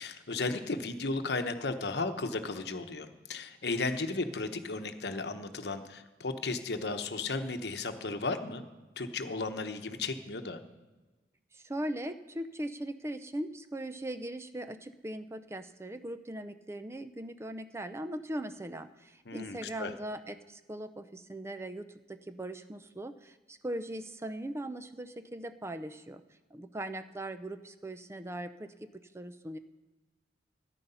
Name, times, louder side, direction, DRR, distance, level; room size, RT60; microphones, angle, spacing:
voice 1, 0.0-8.6 9.0-10.6 19.3-19.9, left 3 dB, 70° left, 8 dB, 0.9 m, -35 dB
voice 2, 11.5-26.2 26.5-29.6, right 1 dB, 15° right, 10 dB, 0.5 m, -40 dB
13.5 x 9.9 x 5.6 m, 1.2 s
head